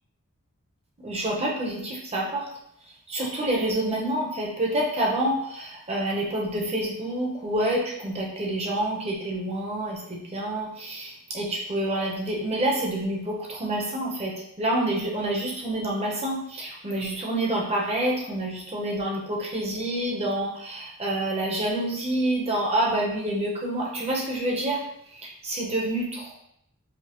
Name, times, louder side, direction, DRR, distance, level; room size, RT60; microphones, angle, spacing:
voice 1, 1.0-2.5 3.1-24.8 25.1-26.3, right 1 dB, 30° right, -2 dB, 0.7 m, -28 dB
5.0 x 2.0 x 2.9 m, 0.73 s
head